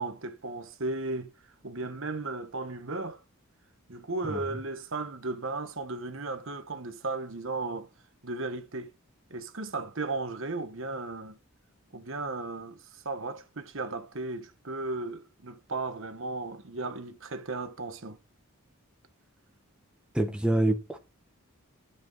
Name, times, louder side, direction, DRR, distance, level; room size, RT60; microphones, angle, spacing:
voice 1, 0.0-1.3 1.6-3.2 3.9-7.9 8.2-8.9 9.3-11.4 11.9-18.2, right 3 dB, 60° right, 1.3 m, -35 dB
voice 2, 20.1-21.0, right 1 dB, 5° right, 1.3 m, -26 dB
12.5 x 8.0 x 4.0 m
head